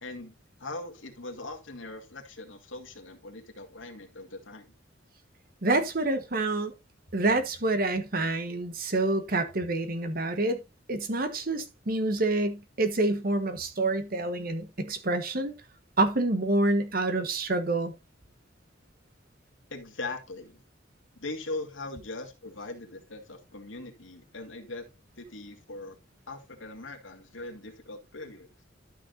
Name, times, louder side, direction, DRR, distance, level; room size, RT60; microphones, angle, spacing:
voice 1, 0.0-4.7 19.7-20.6 21.2-24.9 25.2-26.0 26.3-28.5, left 2 dB, 90° left, 1.9 m, -40 dB
voice 2, 5.6-6.7 7.1-10.6 10.9-15.5 16.0-17.9, right 2 dB, 50° right, 1.2 m, -27 dB
12.5 x 6.2 x 2.6 m
head